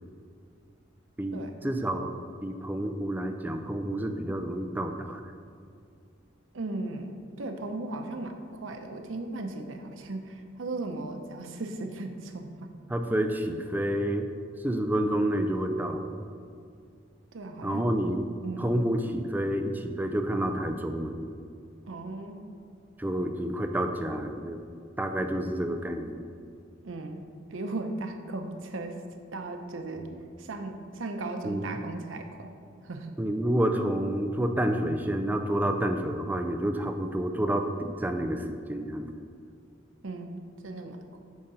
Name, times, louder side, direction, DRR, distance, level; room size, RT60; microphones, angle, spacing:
voice 1, 1.2-2.1 2.4-5.2 12.9-14.3 14.6-16.1 17.6-18.3 18.6-21.2 23.0-24.6 25.0-26.2 30.1-30.2 31.4-31.8 33.2-39.1, right 1 dB, 10° right, 6 dB, 0.4 m, -29 dB
voice 2, 6.5-12.7 17.3-17.9 18.4-18.7 21.8-22.4 26.8-27.2 27.5-28.9 29.3-30.1 30.4-32.5 32.8-33.2 40.0-41.2, right 2 dB, 90° right, 6 dB, 0.7 m, -37 dB
8.6 x 3.8 x 5.4 m, 2.4 s
head